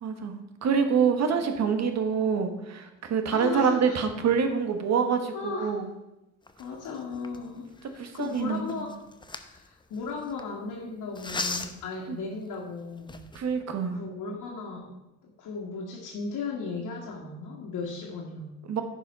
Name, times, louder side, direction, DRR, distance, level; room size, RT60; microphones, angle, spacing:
voice 1, 0.0-5.8 8.0-8.6 12.1-12.2 13.3-14.0 18.7-18.8, right 6 dB, 60° right, 7 dB, 1.3 m, -26 dB
voice 2, 3.3-4.0 5.3-5.8 6.6-8.9 9.3-13.2 13.9-15.0 15.2-18.5, left 4 dB, 80° left, -3 dB, 1.7 m, -36 dB
sound 1, 6.5-10.4 11.2-11.9 12.5-12.6 13.0-13.5, left 3 dB, 15° left, 0.8 m, -38 dB
10.0 x 5.4 x 5.4 m, 0.95 s
cardioid pair, 90°, 30 cm